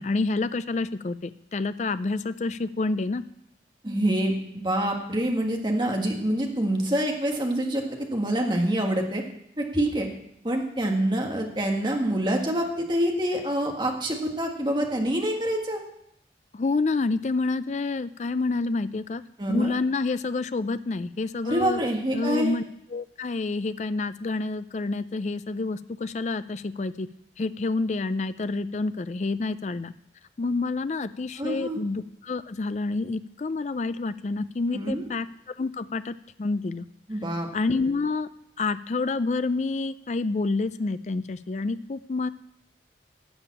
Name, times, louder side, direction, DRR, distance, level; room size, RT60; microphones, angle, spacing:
voice 1, 0.0-3.2 16.5-19.2 19.5-21.8 22.1-22.6 22.9-27.1 27.4-29.9 30.4-36.8 37.5-38.3 38.6-42.3, left 3 dB, 40° left, 13 dB, 0.4 m, -28 dB
voice 2, 3.8-4.3 4.6-9.2 9.6-10.1 10.4-15.8 19.4-19.7 21.4-22.5 31.4-31.8 34.7-35.1 37.1-37.5, right 1 dB, 25° right, 1 dB, 1.7 m, -26 dB
12.5 x 7.1 x 8.4 m, 0.77 s
head